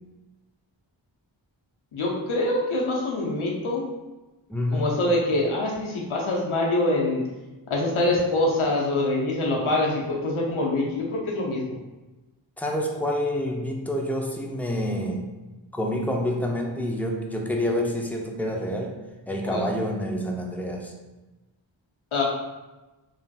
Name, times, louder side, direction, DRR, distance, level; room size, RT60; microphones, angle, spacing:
voice 1, 1.9-3.9 4.7-7.2 7.7-11.7 19.4-19.6 22.1-22.2, left 2 dB, 90° left, -2 dB, 0.7 m, -25 dB
voice 2, 4.5-4.9 12.6-15.3 15.7-18.9 19.3-20.9, left 1 dB, 5° left, 1 dB, 0.4 m, -27 dB
3.2 x 2.5 x 2.3 m, 1.1 s
wide cardioid pair, 50°, 48 cm